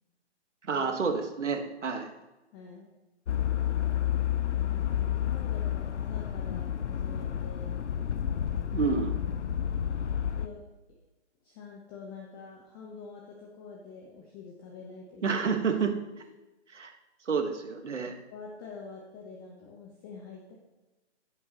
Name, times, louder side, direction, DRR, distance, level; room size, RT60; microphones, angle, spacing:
voice 1, 0.6-2.1 8.7-9.1 15.2-15.9 16.7-16.9 17.2-18.1, right 5 dB, 80° right, 5 dB, 1.5 m, -29 dB
voice 2, 2.5-2.9 4.6-7.8 10.3-10.6 11.4-15.4 18.3-20.6, left 4 dB, 20° left, -1 dB, 0.9 m, -46 dB
sound 1, 3.3-10.5, left 10 dB, 75° left, 0.7 m, -30 dB
15.0 x 5.5 x 3.0 m, 1.1 s
hypercardioid pair, 145°, 35 cm